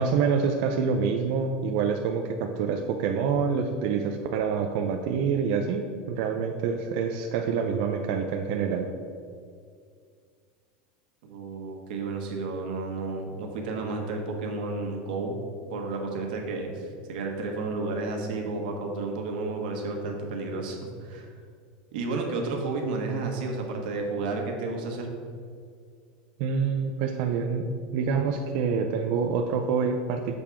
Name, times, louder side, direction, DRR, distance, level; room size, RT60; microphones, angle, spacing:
voice 1, 0.0-8.9 26.4-30.4, right 5 dB, 55° right, 3 dB, 0.4 m, -26 dB
voice 2, 11.2-21.3 21.9-25.1, right 3 dB, 85° right, 2 dB, 1.3 m, -32 dB
6.7 x 3.6 x 5.7 m, 2.2 s
supercardioid pair, 165°, 5 cm